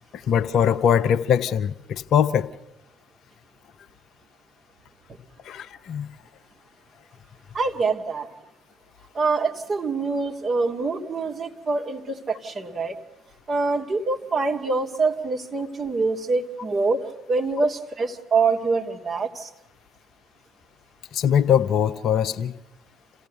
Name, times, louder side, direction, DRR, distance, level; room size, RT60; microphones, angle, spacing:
voice 1, 0.1-2.5 5.4-6.1 21.1-22.5, left 8 dB, 55° left, 12 dB, 0.7 m, -21 dB
voice 2, 7.5-8.3 9.1-13.0 13.5-17.0 17.3-19.5, right 4 dB, 35° right, 2 dB, 2.2 m, -25 dB
28.0 x 16.5 x 6.8 m, 0.96 s
figure-of-eight pair, 50°, 0 cm